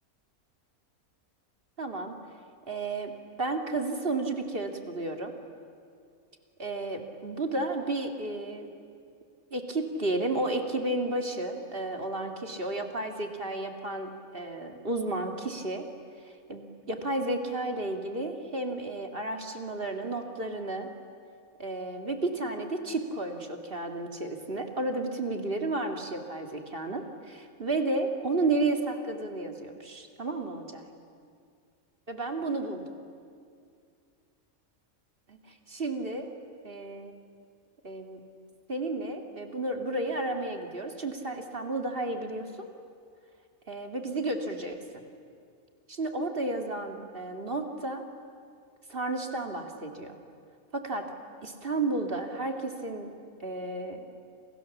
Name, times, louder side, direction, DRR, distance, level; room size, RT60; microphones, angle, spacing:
voice 1, 1.8-2.2 2.7-3.1 3.4-5.3 6.6-8.7 9.5-15.9 16.2-20.9 21.6-30.9 32.1-32.8 35.3-36.3 36.6-37.1 37.8-38.2 38.7-42.7 43.7-45.0 45.9-48.0 48.9-50.2 50.7-51.1 51.4-53.1 53.4-54.1, right 2 dB, 40° right, 4 dB, 2.4 m, -32 dB
29.5 x 27.5 x 7.3 m, 2.3 s
omnidirectional pair, 1.5 m